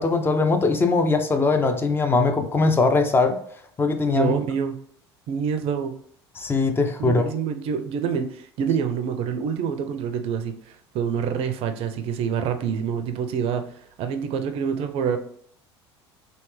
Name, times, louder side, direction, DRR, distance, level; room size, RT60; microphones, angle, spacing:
voice 1, 0.0-3.4 3.8-4.3 6.4-7.2, left 3 dB, 15° left, 6 dB, 0.4 m, -21 dB
voice 2, 4.1-4.8 5.3-5.9 7.0-10.5 10.9-13.6 14.0-15.2, right 7 dB, 45° right, 8 dB, 0.5 m, -26 dB
3.1 x 2.8 x 3.2 m, 0.64 s
figure-of-eight pair, 70°, 14 cm